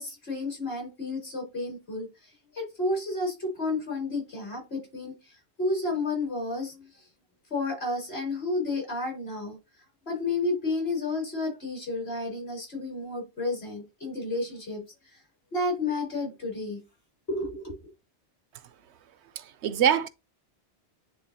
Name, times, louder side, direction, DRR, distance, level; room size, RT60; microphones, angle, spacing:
voice 1, 0.0-2.1 2.5-5.2 5.6-6.8 7.5-9.6 10.1-14.8 15.1-15.2 15.5-16.8 17.3-17.8, left 2 dB, 65° left, 3.8 m, -31 dB
voice 2, 19.4-20.1, right 9 dB, 85° right, 0.9 m, -24 dB
9.9 x 3.7 x 2.7 m
omnidirectional pair, 1.1 m